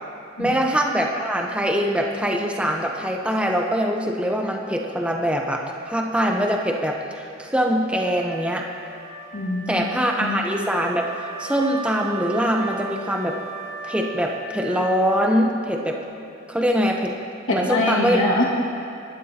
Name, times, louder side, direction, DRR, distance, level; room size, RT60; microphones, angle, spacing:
voice 1, 0.4-8.7 9.7-11.1 11.4-13.4 13.8-16.0 16.5-17.1 17.5-18.2, equal, 5° right, 1 dB, 0.9 m, -23 dB
Wind instrument woodwind instrument, 7.9-15.5, right 4 dB, 25° right, 2.4 m, -37 dB
voice 2, 9.3-9.8 10.2-10.4 17.5-18.4, left 2 dB, 85° left, -3 dB, 2.1 m, -23 dB
22.0 x 12.0 x 3.0 m, 2.6 s
head